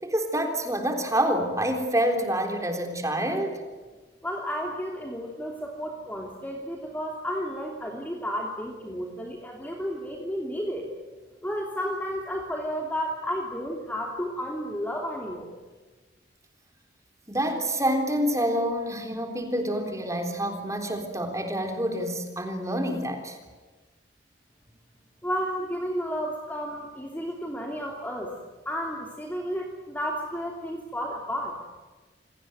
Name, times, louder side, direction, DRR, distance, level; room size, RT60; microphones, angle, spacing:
voice 1, 0.0-3.6 17.3-23.4, right 1 dB, 15° right, 5 dB, 3.7 m, -27 dB
voice 2, 4.2-10.8 11.4-15.5 25.2-28.3 28.6-31.5, equal, 10° left, 0 dB, 2.9 m, -32 dB
28.0 x 19.0 x 9.2 m, 1.3 s
head